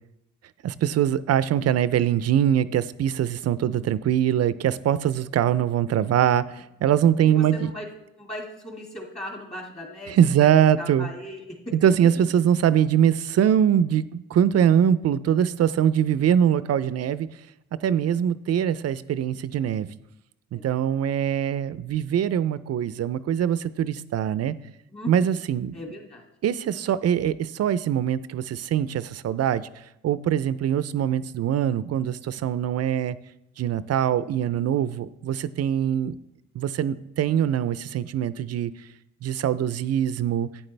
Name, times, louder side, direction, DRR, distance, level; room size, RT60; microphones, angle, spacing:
voice 1, 0.6-7.7 10.1-11.1 11.7-17.3 17.8-19.9 20.5-24.5 25.1-25.7 26.4-29.7 30.0-33.2 33.6-36.2 36.5-38.7 39.2-40.5, right 9 dB, 55° right, 16 dB, 0.5 m, -23 dB
voice 2, 7.3-7.9 8.2-10.5 10.8-12.1 17.8-18.1 20.5-20.7 24.9-25.3 25.7-26.3, left 1 dB, 20° left, 0 dB, 2.2 m, -38 dB
11.5 x 8.9 x 3.3 m, 0.85 s
cardioid pair, 90°, 30 cm